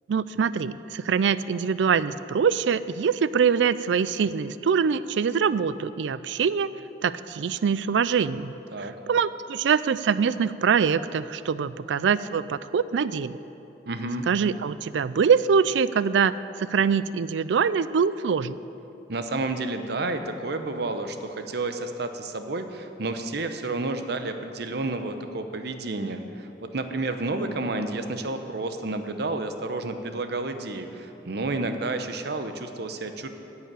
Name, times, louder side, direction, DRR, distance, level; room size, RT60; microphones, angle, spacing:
voice 1, 0.1-6.7 7.0-8.5 8.8-13.3 14.3-18.6, right 6 dB, 90° right, 16 dB, 0.4 m, -24 dB
voice 2, 13.9-14.2 19.1-33.3, right 2 dB, 65° right, 8 dB, 0.8 m, -30 dB
10.0 x 7.0 x 9.1 m, 2.9 s
head